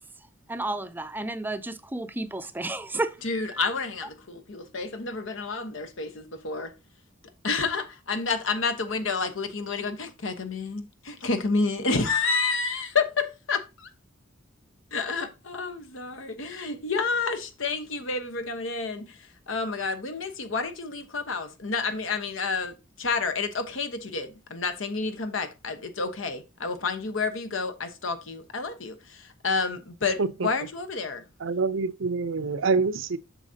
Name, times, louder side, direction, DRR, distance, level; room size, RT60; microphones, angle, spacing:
voice 1, 0.5-3.6, right 2 dB, 10° right, 0.5 m, -32 dB
voice 2, 3.2-6.7 7.4-13.9 14.9-19.1 19.5-31.2, left 4 dB, 80° left, 1.1 m, -29 dB
voice 3, 31.4-33.2, right 4 dB, 80° right, 0.6 m, -26 dB
8.0 x 6.4 x 2.8 m
head